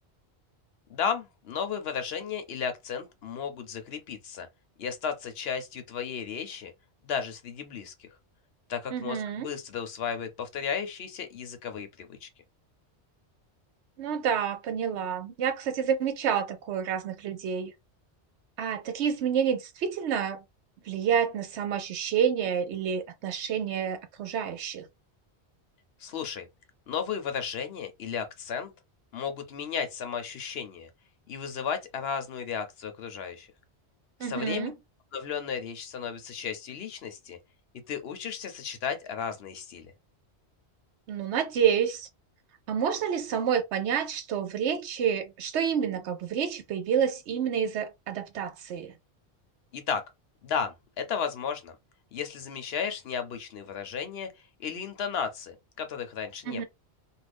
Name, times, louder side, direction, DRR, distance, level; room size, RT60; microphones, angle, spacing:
voice 1, 0.9-4.5 4.8-6.7 7.0-8.1 8.7-12.3 26.0-26.5 26.9-28.7 29.1-30.9 31.3-33.5 34.2-34.7 35.1-37.4 37.9-39.9 49.7-50.0 50.4-51.7 52.1-54.3 54.6-56.6, left 7 dB, 65° left, 0.9 m, -34 dB
voice 2, 8.9-9.5 14.0-17.7 18.6-20.4 20.8-24.9 34.2-34.8 41.1-42.1 42.7-48.9 56.5-56.6, right 8 dB, 80° right, 0.9 m, -29 dB
2.5 x 2.3 x 3.3 m
omnidirectional pair, 1.1 m